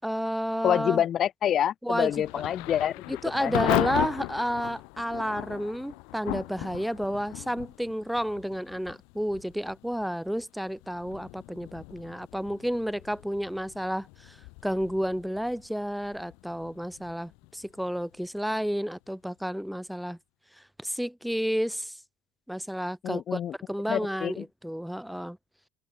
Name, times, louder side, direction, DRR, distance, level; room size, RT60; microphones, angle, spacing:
voice 1, 0.0-1.0 1.8-2.1 3.2-14.4 14.6-20.2 20.6-22.0 22.5-23.4 23.7-25.4, equal, ahead, 5.3 m, -31 dB
voice 2, 0.6-3.6 23.0-23.6 23.9-24.4, left 10 dB, 45° left, 4.8 m, -27 dB
Thunder / Rain, 2.1-18.8, left 31 dB, 65° left, 6.2 m, -37 dB
open air
hypercardioid pair, 70°, 0 cm